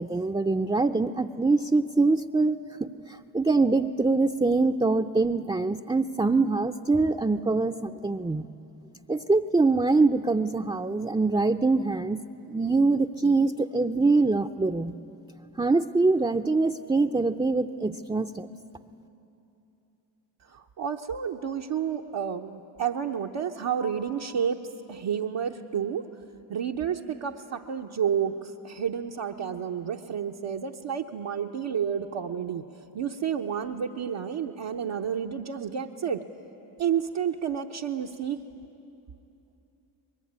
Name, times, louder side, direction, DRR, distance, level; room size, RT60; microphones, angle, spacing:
voice 1, 0.0-2.9 3.3-8.5 9.1-12.2 12.5-14.9 15.6-18.5, right 3 dB, 10° right, 4 dB, 0.6 m, -24 dB
voice 2, 20.5-24.6 24.9-26.1 26.5-32.6 32.9-36.2 36.8-38.4, right 8 dB, 65° right, -1 dB, 1.0 m, -30 dB
24.5 x 21.0 x 9.6 m, 2.8 s
supercardioid pair, 45°, 48 cm